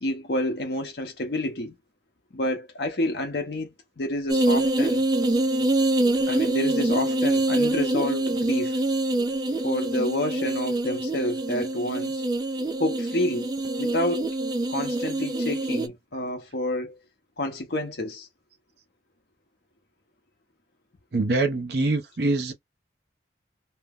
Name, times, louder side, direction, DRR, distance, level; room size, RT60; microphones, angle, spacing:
voice 1, 0.0-1.8 2.3-5.0 6.3-8.8 9.6-12.2 12.8-13.5 13.8-14.3 14.7-17.0 17.4-18.3, left 1 dB, 65° left, 0.7 m, -29 dB
sound 1, 4.3-15.9, right 2 dB, 20° right, 0.3 m, -25 dB
voice 2, 21.1-22.5, right 2 dB, 65° right, 0.7 m, -24 dB
2.7 x 2.0 x 3.5 m
head